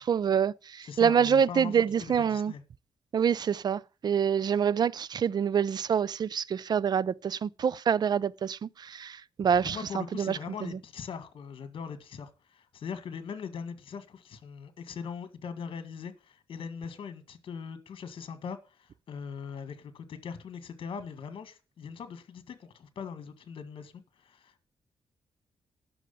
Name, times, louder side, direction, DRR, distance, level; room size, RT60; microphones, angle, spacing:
voice 1, 0.0-2.5 3.1-9.8 10.2-10.4, right 7 dB, 45° right, 0.5 m, -26 dB
voice 2, 0.8-2.6 9.6-24.7, left 6 dB, 65° left, 1.8 m, -41 dB
11.0 x 6.3 x 6.9 m
cardioid pair, 100°, 10 cm